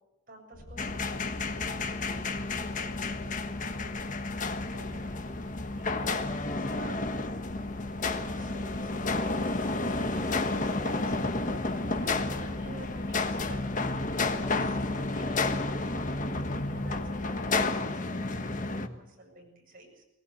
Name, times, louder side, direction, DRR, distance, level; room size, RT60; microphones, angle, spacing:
voice 1, 0.3-4.1 4.7-7.0 7.8-8.0 8.3-20.0, right 1 dB, 45° right, 1 dB, 7.5 m, -49 dB
sound 1, 0.5-17.7, left 1 dB, 70° left, 1.6 m, -45 dB
sound 2, 0.8-18.9, left 3 dB, 40° left, 1.4 m, -31 dB
21.0 x 19.5 x 8.0 m, 0.95 s
head